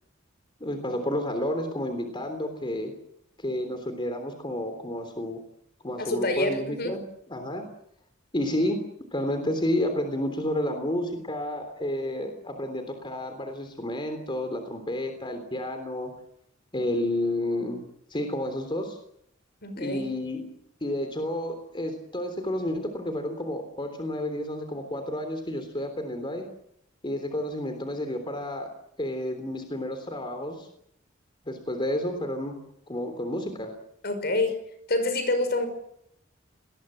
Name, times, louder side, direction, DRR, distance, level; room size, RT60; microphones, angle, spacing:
voice 1, 0.6-2.9 3.4-5.4 5.8-7.0 7.3-7.7 8.3-8.8 9.1-16.1 16.7-17.8 18.1-19.0 19.8-20.5 20.8-26.5 27.0-28.7 29.0-30.7 31.4-32.6 32.9-33.7, left 1 dB, 25° left, 7 dB, 3.4 m, -30 dB
voice 2, 6.0-6.9 19.6-20.1 34.0-34.6 34.9-35.7, left 2 dB, 55° left, 10 dB, 5.6 m, -27 dB
27.5 x 21.0 x 7.7 m, 0.77 s
head